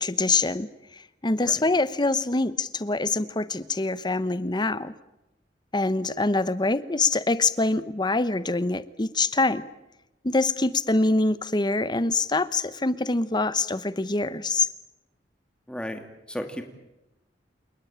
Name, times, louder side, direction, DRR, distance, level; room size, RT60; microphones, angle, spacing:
voice 1, 0.0-4.9 5.7-9.7 10.2-14.7, left 3 dB, 25° left, 15 dB, 1.0 m, -25 dB
voice 2, 15.7-16.0 16.3-16.6, equal, 5° left, 5 dB, 2.5 m, -33 dB
28.5 x 19.5 x 8.9 m, 0.96 s
head